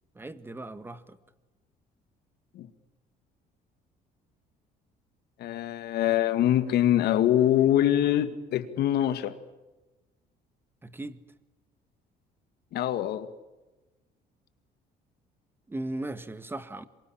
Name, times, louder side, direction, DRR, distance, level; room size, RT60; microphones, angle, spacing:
voice 1, 0.1-1.2 10.8-11.2 15.7-16.9, right 2 dB, 15° right, 1.8 m, -37 dB
voice 2, 5.4-9.4 12.7-13.3, left 11 dB, 70° left, 2.2 m, -24 dB
27.0 x 24.0 x 8.8 m
cardioid pair, 110°, 17 cm